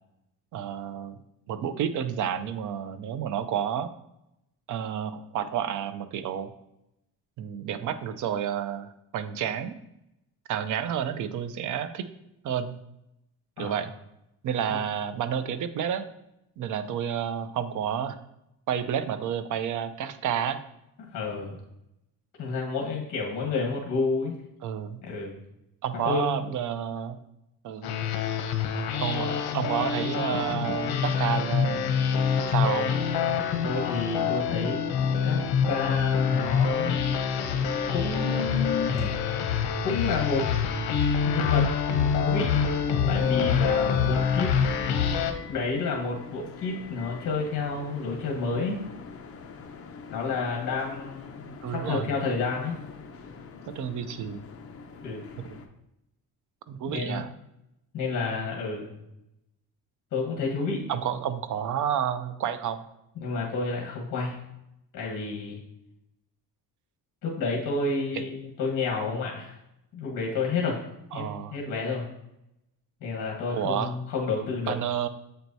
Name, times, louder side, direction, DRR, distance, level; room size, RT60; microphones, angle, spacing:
voice 1, 0.5-1.2 1.5-3.9 4.7-6.5 7.4-9.7 10.5-12.1 12.4-12.8 13.6-13.9 14.4-16.1 16.6-18.2 18.7-20.6 24.6-25.0 25.8-27.2 27.6-27.9 29.0-31.9 32.5-32.9 51.6-52.1 53.7-54.5 55.5-55.6 56.7-57.3 60.9-62.8 68.1-68.3 71.1-71.6 73.5-73.9 74.7-75.1, right 9 dB, 55° right, 11 dB, 0.5 m, -30 dB
voice 2, 21.0-21.6 22.4-24.3 25.0-25.4 25.9-26.4 33.6-34.8 35.2-37.0 37.9-39.2 39.8-40.5 41.2-42.5 43.1-44.6 45.5-48.8 50.1-52.7 55.0-55.2 56.9-57.2 57.9-59.0 60.1-60.9 63.2-64.4 64.9-65.6 67.2-69.5 69.9-70.8 71.1-71.2 71.5-72.1 73.0-74.8, left 4 dB, 55° left, -1 dB, 1.3 m, -30 dB
sound 1, 27.8-45.3, left 6 dB, 80° left, 0.8 m, -26 dB
Tap, 31.7-39.2, equal, 10° right, 0.7 m, -46 dB
sound 2, 42.7-55.7, left 5 dB, 40° left, 0.6 m, -45 dB
7.8 x 4.5 x 2.7 m, 0.85 s
cardioid pair, 155°, 38 cm